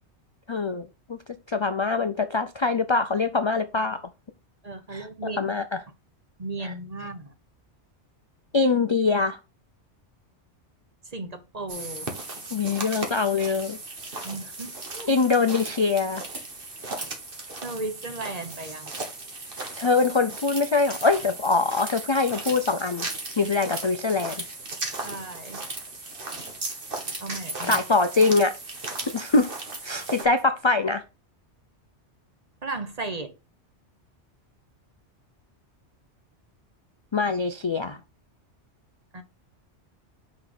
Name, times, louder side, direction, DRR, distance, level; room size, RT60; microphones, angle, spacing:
voice 1, 0.5-1.2 1.5-4.0 4.9-5.8 6.6-6.7 8.5-9.4 12.5-13.8 15.1-16.2 19.8-23.1 23.4-24.4 27.6-28.6 29.1-29.5 29.8-31.0 37.1-38.0, left 4 dB, 40° left, 0.4 m, -23 dB
voice 2, 4.6-5.4 6.4-7.3 11.1-12.1 14.2-15.1 17.6-18.9 23.4-23.5 25.0-25.6 27.2-27.8 32.6-33.3 39.1-39.2, right 2 dB, 35° right, 1.0 m, -35 dB
sound 1, 11.7-30.2, right 2 dB, 50° right, 1.7 m, -36 dB
6.1 x 5.3 x 5.0 m
omnidirectional pair, 1.2 m